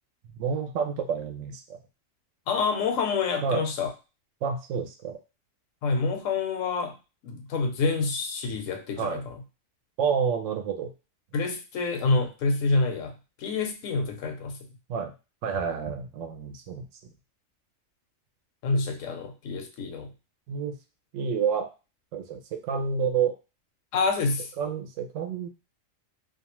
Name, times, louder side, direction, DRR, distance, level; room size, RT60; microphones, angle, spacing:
voice 1, 0.3-1.6 3.4-3.6 4.4-5.2 9.0-9.2 10.0-10.9 14.9-15.1 15.4-16.8 20.5-20.7 21.1-21.7 22.1-23.3 24.6-25.5, right 6 dB, 75° right, 4 dB, 0.9 m, -29 dB
voice 2, 2.5-3.9 5.8-6.9 7.2-9.4 11.3-13.1 13.4-14.6 18.6-20.1 23.9-24.5, left 4 dB, 80° left, 5 dB, 0.9 m, -27 dB
2.4 x 2.3 x 2.9 m, 0.30 s
omnidirectional pair, 1.3 m